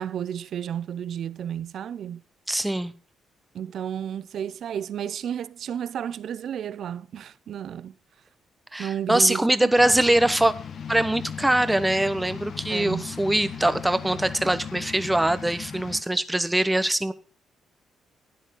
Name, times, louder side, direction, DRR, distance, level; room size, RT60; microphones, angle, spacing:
voice 1, 0.0-2.2 3.5-7.9 8.8-9.7 12.7-13.2, right 9 dB, 65° right, 0.6 m, -32 dB
voice 2, 2.5-2.9 8.7-10.5 10.9-17.1, right 1 dB, 10° right, 1.0 m, -22 dB
sound 1, 9.8-16.0, left 7 dB, 55° left, 1.7 m, -38 dB
12.0 x 10.0 x 3.8 m
cardioid pair, 90°, 0 cm